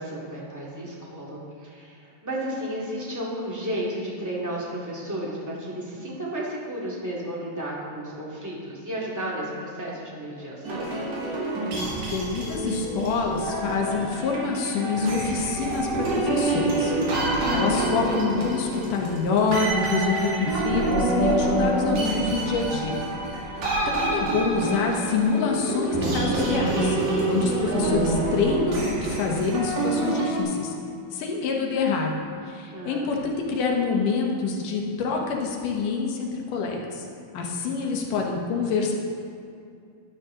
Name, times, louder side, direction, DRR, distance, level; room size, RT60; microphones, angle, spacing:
voice 1, 0.0-10.9 23.6-24.1 32.7-33.1, right 1 dB, 5° right, -6 dB, 1.5 m, -33 dB
sound 1, 10.6-30.4, right 2 dB, 60° right, 3.5 m, -26 dB
voice 2, 12.1-16.9 17.5-23.0 23.9-27.0 27.3-30.7 31.1-32.1 32.5-37.0 37.3-38.9, left 4 dB, 70° left, 0 dB, 2.7 m, -26 dB
12.0 x 11.0 x 3.8 m, 2.4 s
omnidirectional pair, 4.0 m